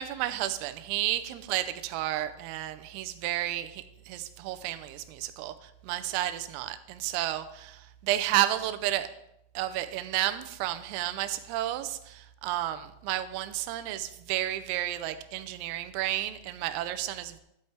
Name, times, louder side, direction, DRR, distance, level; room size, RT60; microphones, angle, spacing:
voice 1, 0.0-9.1 9.5-17.4, right 13 dB, 90° right, 11 dB, 3.3 m, -32 dB
11.5 x 8.5 x 3.3 m, 0.81 s
omnidirectional pair, 5.8 m